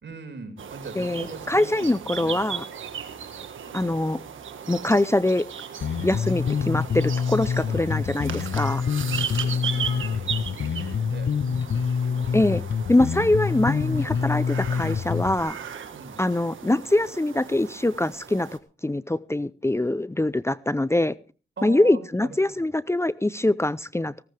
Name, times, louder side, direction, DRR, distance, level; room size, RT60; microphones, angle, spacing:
voice 1, 0.0-1.9 2.2-2.3 9.4-11.3 12.0-12.2 13.9-14.2 15.9-16.2 21.6-22.7, right 4 dB, 65° right, 6 dB, 5.1 m, -41 dB
sound 1, 0.6-18.6, right 7 dB, 90° right, 1.6 m, -37 dB
voice 2, 1.0-2.6 3.7-4.2 4.7-5.5 6.0-8.8 12.3-12.6 12.9-15.6 16.2-18.5 18.8-21.1 21.6-24.1, left 1 dB, 15° left, 17 dB, 0.6 m, -23 dB
Bass guitar, 5.8-15.4, left 6 dB, 75° left, 1.1 m, -26 dB
18.0 x 15.5 x 3.4 m, 0.36 s
cardioid pair, 50°, 20 cm